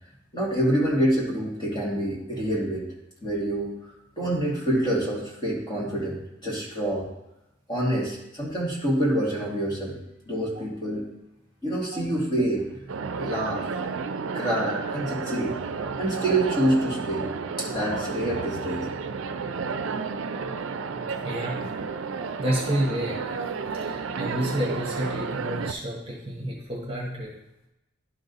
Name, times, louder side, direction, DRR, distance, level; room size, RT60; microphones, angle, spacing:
voice 1, 0.3-2.9 3.2-3.7 4.2-7.1 7.7-10.0 10.3-11.1 11.6-12.8 13.2-13.6 14.3-15.6 16.0-17.3 17.6-18.9, right 1 dB, 20° left, -5 dB, 2.2 m, -26 dB
sound 1, 12.9-25.7, right 5 dB, 75° right, 0.5 m, -32 dB
voice 2, 21.2-21.6 22.4-23.2 23.8-27.3, right 1 dB, 30° right, -3 dB, 1.5 m, -29 dB
11.5 x 3.9 x 4.0 m, 0.89 s
head